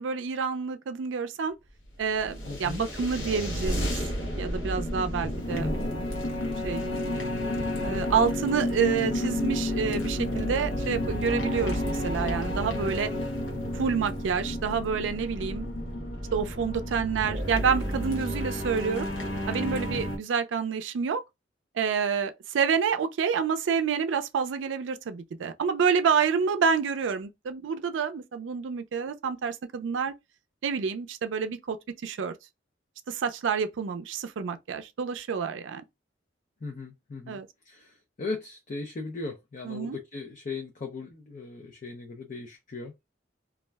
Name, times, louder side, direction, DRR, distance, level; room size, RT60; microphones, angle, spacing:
voice 1, 0.0-1.6 2.0-4.0 4.4-5.7 6.6-7.2 7.8-13.1 13.7-15.7 16.3-19.1 19.5-21.2 21.8-30.1 30.6-31.8 32.0-32.3 33.1-35.8 37.3-37.5 39.7-40.0, right 6 dB, 85° right, 0.4 m, -28 dB
sound 1, 1.8-20.2, left 1 dB, 75° left, 0.8 m, -31 dB
voice 2, 2.4-2.8 19.6-20.1 36.6-37.4 37.6-42.9, left 3 dB, 45° left, 0.4 m, -38 dB
2.3 x 2.1 x 3.3 m
head